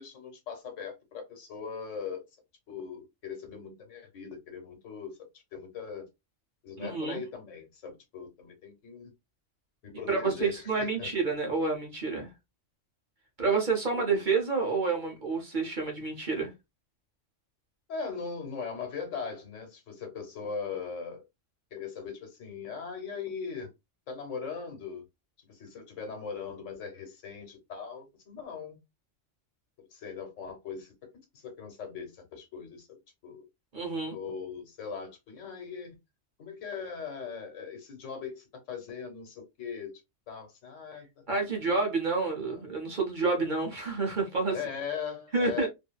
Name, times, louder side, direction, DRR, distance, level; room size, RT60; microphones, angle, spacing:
voice 1, 0.0-2.2 2.7-5.2 5.5-6.0 6.6-9.1 9.8-11.1 13.9-14.1 17.9-21.2 21.7-23.7 24.1-25.0 25.5-28.8 29.8-30.9 31.3-33.4 34.1-36.0 36.4-40.0 40.3-41.2 42.3-42.6 44.5-45.7, left 6 dB, 80° left, 1.3 m, -40 dB
voice 2, 6.8-7.2 10.1-12.3 13.4-16.5 33.7-34.2 41.3-44.6 45.3-45.7, right 4 dB, 45° right, 0.9 m, -29 dB
2.6 x 2.6 x 2.2 m
omnidirectional pair, 1.3 m